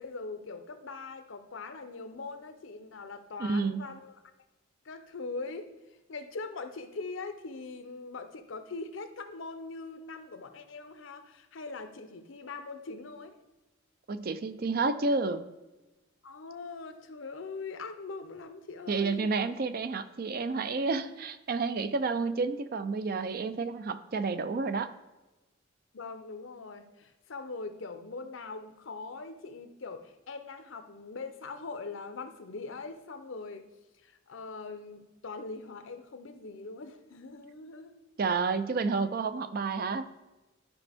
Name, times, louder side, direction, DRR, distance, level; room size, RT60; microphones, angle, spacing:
voice 1, 0.0-4.1 4.8-5.7 6.1-13.4 16.2-19.3 25.9-33.7 34.0-38.0, left 3 dB, 70° left, 9 dB, 0.7 m, -42 dB
voice 2, 3.4-3.9 14.1-15.4 18.9-24.9 38.2-40.1, right 4 dB, 45° right, 11 dB, 0.4 m, -30 dB
12.0 x 5.1 x 3.5 m, 1.1 s
head